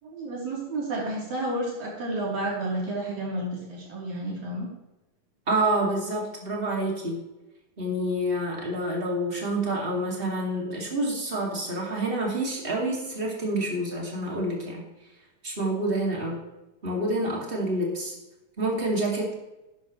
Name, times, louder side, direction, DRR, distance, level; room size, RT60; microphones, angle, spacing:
voice 1, 0.0-4.7, right 1 dB, 65° right, -5 dB, 5.0 m, -31 dB
voice 2, 5.5-7.2 7.8-14.8 15.4-16.4 16.8-18.2 18.6-19.3, right 1 dB, 20° right, -2 dB, 2.3 m, -28 dB
12.0 x 10.0 x 3.2 m, 0.98 s
omnidirectional pair, 3.6 m